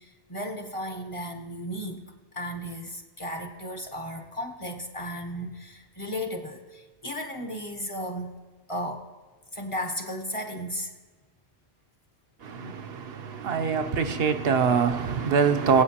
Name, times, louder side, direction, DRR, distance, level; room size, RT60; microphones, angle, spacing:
voice 1, 0.0-2.0 2.3-8.4 8.7-9.1 9.5-10.9, equal, 30° left, 0.9 m, -35 dB
voice 2, 12.4-15.8, right 6 dB, 70° right, 0.8 m, -24 dB
22.5 x 8.3 x 2.8 m
omnidirectional pair, 1.1 m